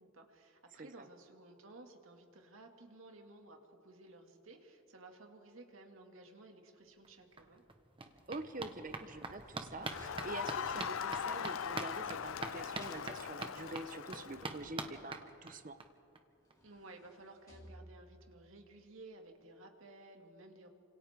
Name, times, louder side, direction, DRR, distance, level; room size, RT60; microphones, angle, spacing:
voice 1, 0.0-7.6 16.4-20.7, right 2 dB, 90° right, 3 dB, 2.3 m, -56 dB
sound 1, 7.0-7.1 7.4-15.8 16.2-16.3 16.5-16.6 16.9-17.0, right 3 dB, 25° right, 1.3 m, -45 dB
voice 2, 8.3-15.8, right 2 dB, 40° right, 10 dB, 1.0 m, -46 dB
sound 2, 8.7-10.8 11.6-13.6 15.8-15.9 16.3-18.3 18.9-19.0, equal, 15° left, 2.5 m, -60 dB
Crowd, 9.8-14.6, left 7 dB, 85° left, 0.5 m, -40 dB
29.0 x 26.5 x 3.7 m, 2.6 s
head